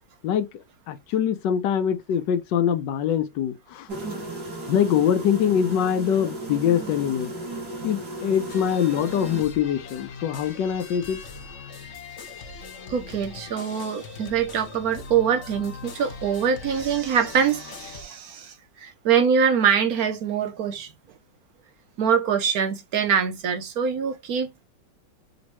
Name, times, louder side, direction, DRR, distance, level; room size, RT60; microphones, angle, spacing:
voice 1, 0.9-3.9 4.7-7.3 7.8-11.2, left 9 dB, 75° left, 1.3 m, -23 dB
sound 1, 3.9-9.4, right 2 dB, 45° right, 2.5 m, -35 dB
sound 2, 8.5-18.0, left 4 dB, 45° left, 1.1 m, -41 dB
voice 2, 12.9-20.9 22.0-24.6, right 7 dB, 65° right, 0.9 m, -24 dB
5.2 x 3.0 x 3.0 m
omnidirectional pair, 2.1 m